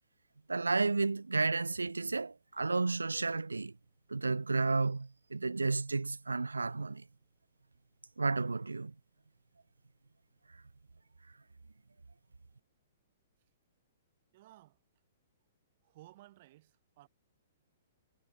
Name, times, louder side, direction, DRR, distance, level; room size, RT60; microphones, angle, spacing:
voice 1, 0.5-3.8 4.1-7.0 8.2-8.9, right 3 dB, 85° right, 0.4 m, -32 dB
voice 2, 14.3-14.8 15.8-17.1, right 16 dB, 45° right, 6.7 m, -57 dB
figure-of-eight pair, 115°, 0 cm